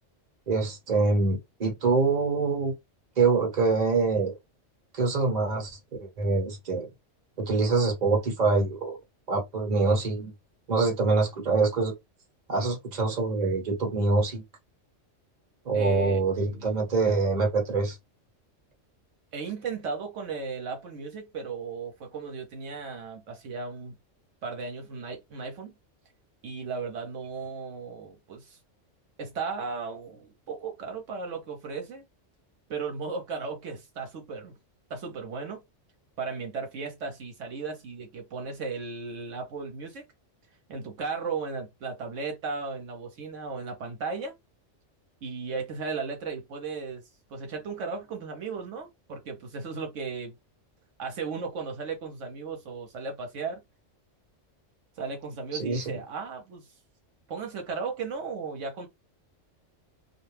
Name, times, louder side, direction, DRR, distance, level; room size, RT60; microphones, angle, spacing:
voice 1, 0.5-2.7 3.2-4.3 4.9-6.9 7.4-8.9 9.3-10.3 10.7-11.9 12.5-14.4 15.6-18.0 55.5-56.0, right 3 dB, 35° right, 1.0 m, -25 dB
voice 2, 15.7-16.7 19.3-23.9 24.4-25.7 26.4-28.6 29.2-32.1 32.7-34.5 34.9-35.6 36.2-40.0 40.7-44.3 45.2-47.0 47.3-50.4 51.0-53.6 55.0-56.7 57.3-58.9, right 4 dB, 75° right, 1.0 m, -35 dB
2.5 x 2.2 x 3.1 m
omnidirectional pair, 1.3 m